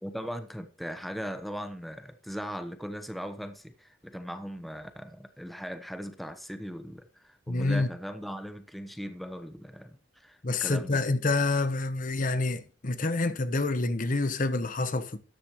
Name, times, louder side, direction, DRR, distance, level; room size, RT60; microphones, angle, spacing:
voice 1, 0.0-11.0, equal, ahead, 0.9 m, -39 dB
voice 2, 7.5-7.9 10.4-15.2, left 3 dB, 45° left, 0.9 m, -27 dB
13.5 x 9.8 x 3.1 m
head